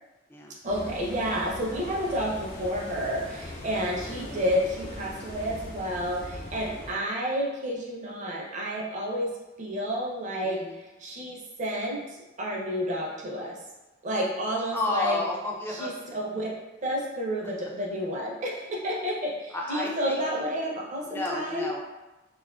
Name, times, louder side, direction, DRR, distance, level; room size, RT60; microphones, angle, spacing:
voice 1, 0.6-9.3 9.6-13.6 14.0-15.2 15.8-16.5 16.8-21.7, equal, 40° right, -3 dB, 0.5 m, -30 dB
sound 1, 0.7-6.9, left 1 dB, 80° left, 0.8 m, -40 dB
voice 2, 10.4-10.8 14.7-16.2 17.6-17.7 19.5-20.2 21.0-21.8, left 2 dB, 10° left, -1 dB, 0.3 m, -32 dB
2.5 x 2.4 x 2.3 m, 1.1 s
head